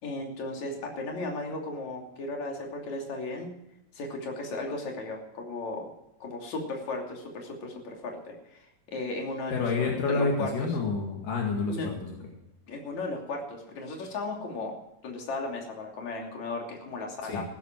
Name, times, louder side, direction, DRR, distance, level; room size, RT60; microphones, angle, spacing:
voice 1, 0.0-3.5 3.9-5.9 6.2-10.7 11.7-12.0 12.7-14.7 15.0-17.4, left 2 dB, 60° left, 0 dB, 4.2 m, -35 dB
voice 2, 9.5-12.1 17.3-17.4, left 4 dB, 75° left, 0 dB, 3.7 m, -28 dB
16.0 x 13.5 x 4.6 m, 0.89 s
omnidirectional pair, 3.8 m